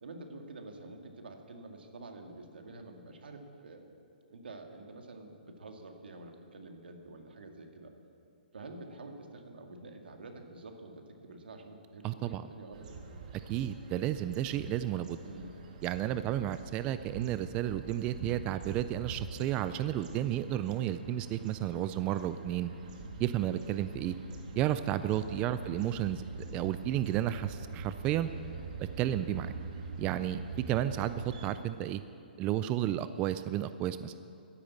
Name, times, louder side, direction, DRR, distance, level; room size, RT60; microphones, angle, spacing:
voice 1, 0.0-3.9 4.3-7.9 8.5-12.9 15.2-15.6 25.0-25.6, right 2 dB, 85° right, 4 dB, 2.1 m, -48 dB
voice 2, 12.0-12.4 13.5-15.2 15.8-22.7 23.2-24.2 24.6-26.2 26.5-28.3 29.0-29.5 30.0-30.4 30.7-32.0 32.4-34.1, right 12 dB, 20° right, 12 dB, 0.3 m, -32 dB
sound 1, 12.7-31.6, right 3 dB, 50° right, 2.1 m, -44 dB
12.5 x 10.0 x 8.4 m, 2.6 s
hypercardioid pair, 160°, 5 cm